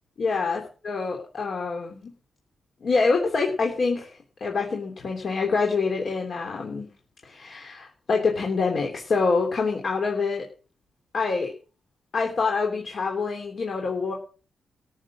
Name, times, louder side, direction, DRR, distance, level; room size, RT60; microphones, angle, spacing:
voice 1, 0.2-2.1 2.8-4.1 4.4-6.9 7.2-10.4 11.1-11.5 12.1-14.1, left 4 dB, 50° left, 1 dB, 3.3 m, -26 dB
14.0 x 8.1 x 7.4 m, 0.36 s
wide cardioid pair, 125°, 0 cm